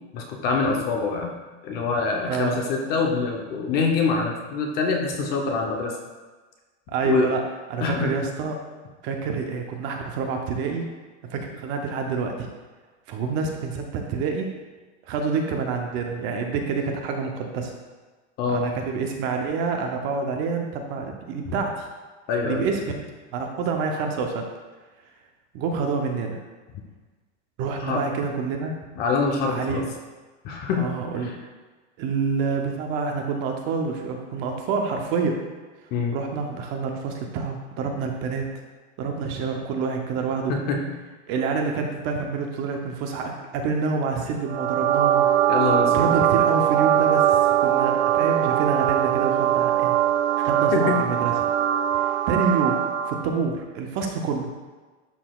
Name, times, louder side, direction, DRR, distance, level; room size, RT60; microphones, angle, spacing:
voice 1, 0.1-1.3 1.6-5.9 7.0-7.3 7.8-8.1 18.4-18.7 21.5-21.6 22.3-22.7 27.8-28.0 29.0-29.8 30.4-30.9 31.2-31.4 35.9-36.2 40.5-41.0 45.5-46.1 50.7-51.0, left 4 dB, 30° left, 2 dB, 0.6 m, -25 dB
voice 2, 2.3-2.6 6.9-7.4 7.7-8.6 9.0-10.8 11.3-12.5 13.1-14.5 15.0-17.7 18.5-21.8 22.4-23.0 23.3-24.5 25.5-26.4 27.6-28.7 29.5-29.9 30.8-31.3 32.0-35.4 36.1-38.5 39.0-40.5 41.3-45.3 45.8-50.0 50.4-51.3 51.9-54.6, right 5 dB, 35° right, 3 dB, 0.6 m, -27 dB
sound 1, 44.5-53.3, right 11 dB, 85° right, 0.6 m, -21 dB
11.5 x 3.9 x 2.3 m, 1.3 s
supercardioid pair, 165°, 35 cm